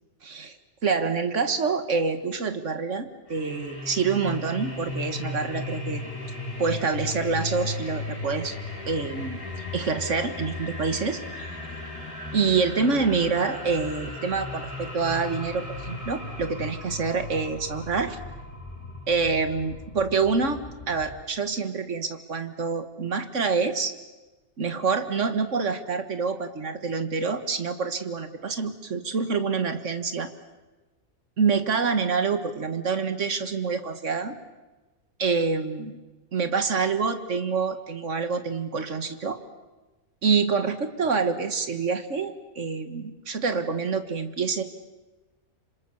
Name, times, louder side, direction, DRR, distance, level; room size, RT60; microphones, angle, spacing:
voice 1, 0.2-0.6 0.8-6.0 6.6-8.6 8.9-11.2 12.3-18.2 19.1-20.6 20.9-23.9 24.6-30.3 31.4-34.4 35.2-35.9 36.3-39.4 40.2-44.6, right 5 dB, 70° right, 9 dB, 1.9 m, -26 dB
sound 1, 3.3-21.2, left 2 dB, 25° left, 6.5 m, -36 dB
26.5 x 26.0 x 7.0 m, 1.2 s
omnidirectional pair, 1.3 m